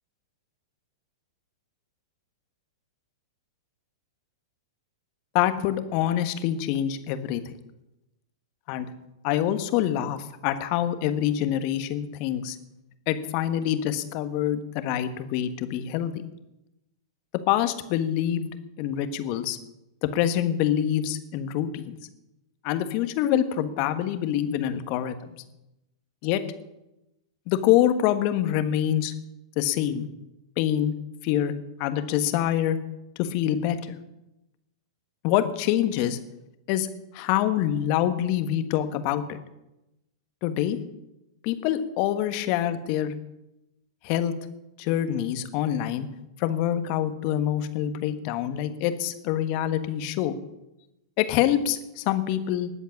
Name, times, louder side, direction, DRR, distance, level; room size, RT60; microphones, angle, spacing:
voice 1, 5.3-7.4 8.7-8.9 9.2-12.6 13.1-16.1 17.5-18.5 18.8-19.6 20.0-22.0 22.6-25.1 26.2-26.4 27.5-29.1 29.6-30.1 30.6-30.9 31.2-31.5 31.8-32.8 33.2-34.0 35.2-36.2 36.7-39.4 40.4-40.8 41.4-43.1 44.0-44.3 44.8-46.1 46.4-50.4 51.2-52.7, left 11 dB, 45° left, 10 dB, 1.4 m, -25 dB
19.5 x 8.2 x 7.2 m, 0.93 s
figure-of-eight pair, 105°, 2 cm